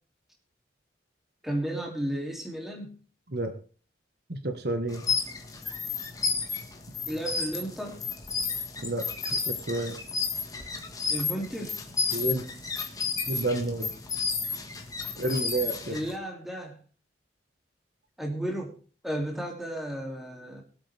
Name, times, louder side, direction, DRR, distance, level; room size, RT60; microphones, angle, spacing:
voice 1, 1.4-3.0 7.1-8.0 11.1-11.8 15.9-16.8 18.2-18.7 19.0-20.6, right 1 dB, ahead, 0 dB, 2.8 m, -33 dB
voice 2, 4.3-5.0 8.8-9.1 9.4-10.0 12.1-12.4 13.3-13.9 15.1-16.0, right 1 dB, 60° right, 7 dB, 1.4 m, -30 dB
sound 1, 4.9-16.2, left 5 dB, 20° left, 1.6 m, -32 dB
22.0 x 8.1 x 3.5 m, 0.39 s
head